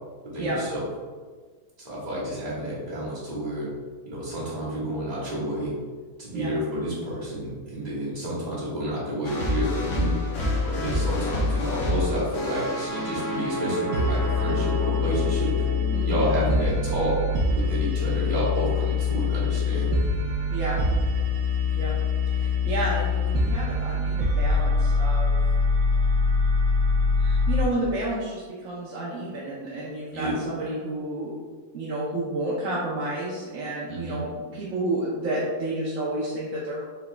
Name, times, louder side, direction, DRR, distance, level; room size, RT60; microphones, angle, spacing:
voice 1, 0.3-0.8 1.8-3.7 4.0-5.7 6.2-10.1 10.6-15.7 16.0-17.1 17.5-20.0 30.1-30.4 33.9-34.2, right 1 dB, 25° right, -9 dB, 1.5 m, -30 dB
sound 1, 9.2-17.4, left 1 dB, 55° left, 1.2 m, -29 dB
sound 2, 13.9-27.6, left 3 dB, 85° right, 1.2 m, -24 dB
voice 2, 15.9-16.3 20.5-20.8 21.7-21.9 22.3-25.3 27.2-31.3 31.7-36.8, right 1 dB, 60° right, -6 dB, 0.9 m, -30 dB
4.6 x 4.2 x 2.2 m, 1.5 s
omnidirectional pair, 1.7 m